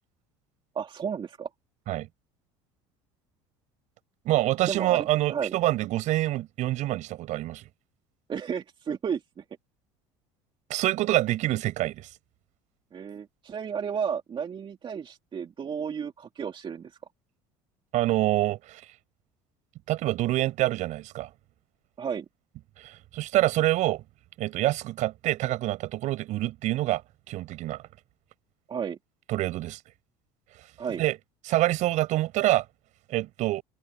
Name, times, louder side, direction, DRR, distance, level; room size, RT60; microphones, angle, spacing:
voice 1, 0.7-1.5 4.7-5.5 8.3-9.4 12.9-17.0 22.0-22.3 28.7-29.0 30.8-31.0, right 7 dB, 35° right, 2.4 m, -33 dB
voice 2, 4.2-7.6 10.7-12.1 17.9-18.8 19.9-21.3 22.8-24.0 24.4-27.0 27.3-27.8 29.3-29.8 31.0-31.2 31.5-32.6 33.1-33.6, right 16 dB, 60° right, 7.6 m, -26 dB
open air
hypercardioid pair, 80°, 14 cm